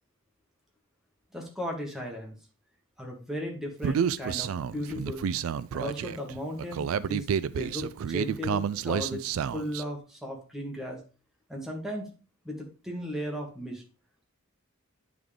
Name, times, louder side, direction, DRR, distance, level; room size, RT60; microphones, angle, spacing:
voice 1, 1.3-2.3 3.0-5.3 5.7-9.2 9.5-11.0 11.5-12.1 12.4-13.8, equal, ahead, 0 dB, 1.4 m, -36 dB
Human voice, 3.8-9.8, right 7 dB, 75° right, 0.3 m, -30 dB
9.2 x 3.7 x 3.4 m, 0.34 s
head